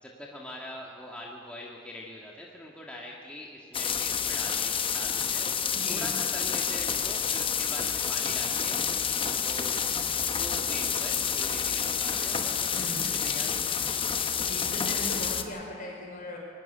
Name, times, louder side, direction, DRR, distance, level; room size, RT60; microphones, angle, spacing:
voice 1, 0.0-5.5 5.9-8.8 9.2-9.8 10.2-12.8 13.0-13.8, left 1 dB, 5° left, -3 dB, 1.8 m, -43 dB
sound 1, 3.7-15.4, left 7 dB, 25° left, 0.9 m, -29 dB
voice 2, 5.7-6.1 12.7-13.3 14.4-16.4, left 1 dB, 45° left, 0 dB, 5.2 m, -38 dB
23.0 x 12.5 x 9.9 m, 2.2 s
head